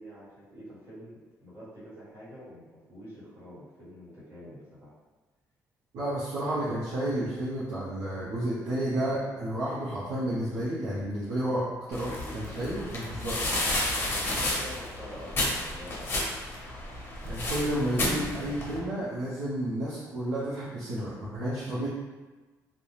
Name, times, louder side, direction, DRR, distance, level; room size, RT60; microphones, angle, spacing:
voice 1, 0.0-4.9 14.0-16.2, equal, 45° right, -10 dB, 1.4 m, -46 dB
voice 2, 5.9-13.4 17.2-21.9, right 1 dB, 75° right, -9 dB, 0.6 m, -31 dB
sound 1, 11.9-18.8, left 1 dB, 35° left, 0.7 m, -31 dB
2.4 x 2.1 x 3.1 m, 1.3 s
cardioid pair, 125°, 6 cm